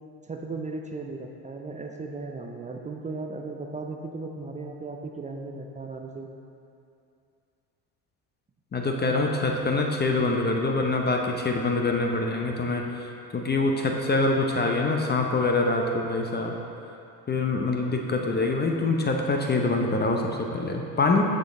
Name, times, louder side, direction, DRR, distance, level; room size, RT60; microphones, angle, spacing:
voice 1, 0.3-6.3, right 3 dB, 15° right, 2 dB, 0.4 m, -36 dB
voice 2, 8.7-13.0 13.3-16.5 17.3-21.2, left 3 dB, 20° left, 1 dB, 0.7 m, -25 dB
6.5 x 6.2 x 3.7 m, 2.6 s
hypercardioid pair, 75°, 46 cm